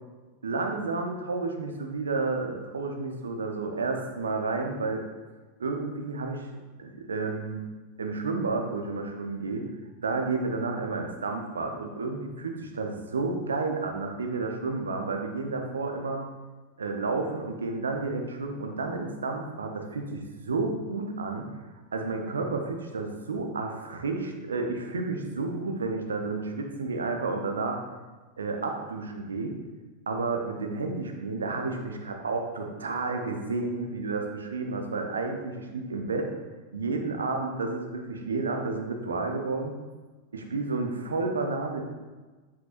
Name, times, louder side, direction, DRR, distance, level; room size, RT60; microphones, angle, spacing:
voice 1, 0.4-5.0 5.6-6.5 6.8-7.6 8.0-9.6 10.0-16.2 16.8-21.6 21.9-27.8 28.4-29.6 30.1-36.3 36.7-39.8 40.3-41.8, right 3 dB, 70° right, 3 dB, 0.8 m, -31 dB
7.6 x 5.6 x 2.5 m, 1.3 s
figure-of-eight pair, 90°, 0 cm